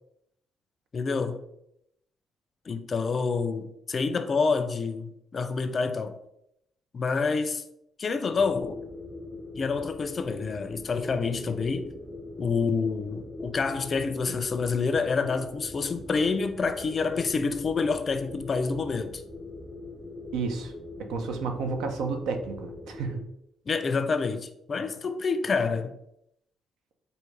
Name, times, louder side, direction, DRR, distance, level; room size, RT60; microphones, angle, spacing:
voice 1, 0.9-1.4 2.7-6.2 6.9-7.6 8.0-8.8 9.6-11.9 12.4-19.2 23.7-25.9, left 4 dB, 40° left, 0.4 m, -28 dB
sound 1, 8.3-23.2, left 2 dB, 5° right, 0.6 m, -42 dB
voice 2, 20.3-20.7 21.0-23.2, right 4 dB, 90° right, 0.5 m, -31 dB
4.7 x 2.7 x 3.2 m
cardioid pair, 90°, 0 cm